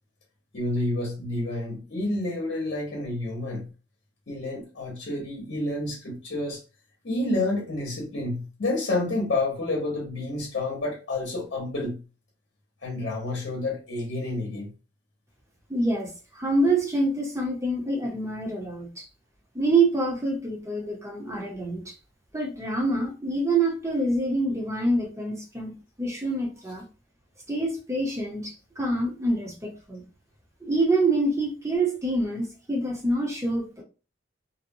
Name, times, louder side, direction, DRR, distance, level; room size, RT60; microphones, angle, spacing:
voice 1, 0.5-3.7 4.3-6.6 7.0-12.0 12.8-14.7, left 2 dB, 60° left, 0.8 m, -29 dB
voice 2, 15.7-19.0 19.5-21.9 22.3-26.8 27.5-30.0 30.6-33.8, right 2 dB, 15° right, 0.7 m, -26 dB
2.6 x 2.2 x 2.6 m
head